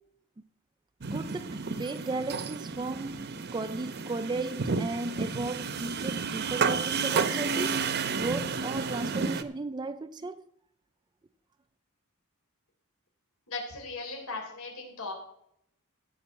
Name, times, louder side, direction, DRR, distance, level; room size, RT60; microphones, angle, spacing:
sound 1, 1.0-9.4, right 5 dB, 50° right, 0.8 m, -31 dB
voice 1, 1.1-7.8 8.1-10.4, right 3 dB, 20° right, 0.4 m, -35 dB
voice 2, 13.5-15.1, left 3 dB, 85° left, 3.7 m, -37 dB
15.5 x 5.4 x 7.3 m
head